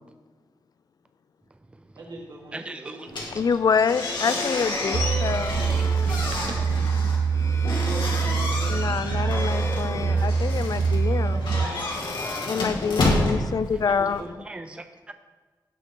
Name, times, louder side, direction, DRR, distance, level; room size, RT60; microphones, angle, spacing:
voice 1, 1.9-3.2 7.8-8.8 11.0-11.8 13.8-14.3, right 1 dB, 75° right, -4 dB, 3.1 m, -39 dB
voice 2, 2.5-3.1 5.7-6.7 8.4-8.5 10.0-10.3 11.6-11.7 13.7-13.8 14.4-15.1, right 2 dB, 15° right, 7 dB, 0.5 m, -41 dB
sound 1, 3.1-14.2, left 2 dB, 85° left, 2.4 m, -30 dB
voice 3, 3.3-5.7 8.7-11.4 12.5-14.2, left 6 dB, 55° left, 14 dB, 0.4 m, -26 dB
sound 2, 4.2-13.2, left 3 dB, 40° left, 0.9 m, -39 dB
sound 3, 4.9-11.7, right 5 dB, 60° right, 0.5 m, -24 dB
17.0 x 6.4 x 3.8 m, 1.3 s
wide cardioid pair, 125°, 8 cm